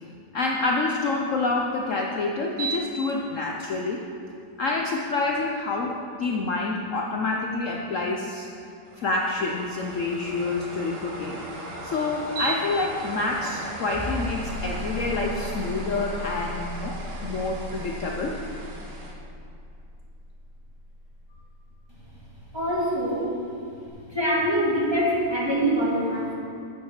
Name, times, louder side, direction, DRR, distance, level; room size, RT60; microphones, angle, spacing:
voice 1, 0.3-4.0 4.6-8.5 9.0-18.4, left 3 dB, 60° left, 0 dB, 0.9 m, -27 dB
sound 1, 2.5-3.1 3.6-3.7 8.9-19.1, right 3 dB, 75° right, 1.9 m, -37 dB
sound 2, 13.9-22.4 23.9-24.0, left 1 dB, 10° left, 0.5 m, -37 dB
voice 2, 22.5-23.2 24.1-26.3, equal, 15° right, -7 dB, 2.2 m, -24 dB
8.8 x 7.1 x 6.7 m, 2.4 s
omnidirectional pair, 1.9 m